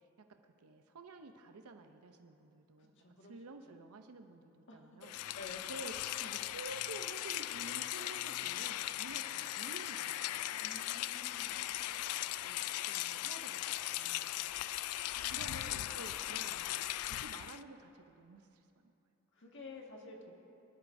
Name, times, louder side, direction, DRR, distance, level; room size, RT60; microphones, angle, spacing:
voice 1, 0.0-5.1 5.7-5.9 6.2-10.5 11.6-11.8 12.2-14.5 14.8-15.0 15.3-16.6 17.0-18.9, right 3 dB, 85° right, 6 dB, 0.6 m, -51 dB
voice 2, 2.8-3.3 4.7-5.1 5.4-5.6 10.5-11.5 15.1-16.0 16.5-16.7 19.3-20.3, left 3 dB, 55° left, -1 dB, 1.7 m, -52 dB
Rain, 5.0-17.6, left 14 dB, 80° left, 0.3 m, -38 dB
22.5 x 11.5 x 2.6 m, 2.9 s
head